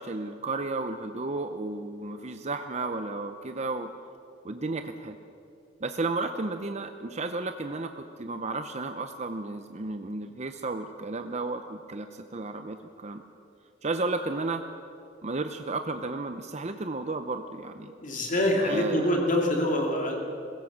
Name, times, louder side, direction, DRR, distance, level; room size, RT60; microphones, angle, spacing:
voice 1, 0.0-3.9 4.4-5.2 5.8-13.2 13.8-14.6 15.2-17.9 18.6-19.1, right 3 dB, 35° right, 7 dB, 0.7 m, -33 dB
voice 2, 18.0-20.1, left 1 dB, 45° left, 1 dB, 2.6 m, -25 dB
22.0 x 16.5 x 7.3 m, 2.7 s
head